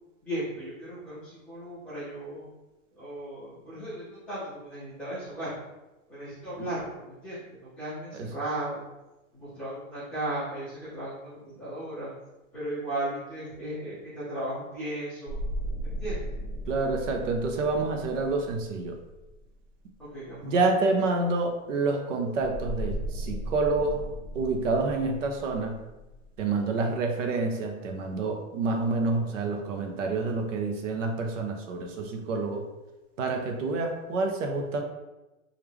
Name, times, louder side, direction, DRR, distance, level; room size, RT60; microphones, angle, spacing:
voice 1, 0.2-2.5 3.0-5.6 6.1-8.8 9.3-12.1 12.5-15.4 15.8-16.4 20.0-20.6, right 1 dB, 5° left, -15 dB, 0.7 m, -36 dB
sound 1, 15.3-19.7 22.4-26.5, equal, 55° left, 0.8 m, -37 dB
voice 2, 16.7-19.0 20.4-24.0 24.3-25.8 26.4-32.7 33.2-34.8, right 3 dB, 65° right, 3 dB, 0.6 m, -28 dB
3.1 x 2.4 x 3.3 m, 1.0 s
supercardioid pair, 175°, 41 cm